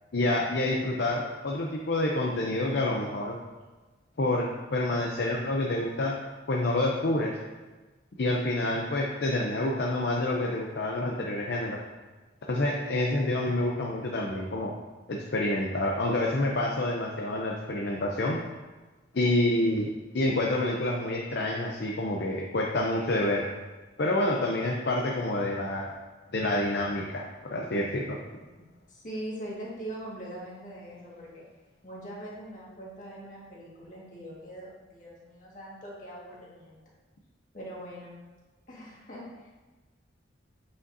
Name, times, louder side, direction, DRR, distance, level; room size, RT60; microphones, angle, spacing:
voice 1, 0.1-3.4 4.2-6.2 6.5-7.3 8.2-11.8 12.5-14.7 15.1-18.4 19.1-23.5 24.0-25.9 26.3-28.2, left 1 dB, 60° left, -1 dB, 0.6 m, -28 dB
voice 2, 28.9-31.4 31.8-36.8 37.5-38.2 38.7-39.5, right 1 dB, 40° left, -5 dB, 1.8 m, -42 dB
8.4 x 5.1 x 2.7 m, 1.3 s
head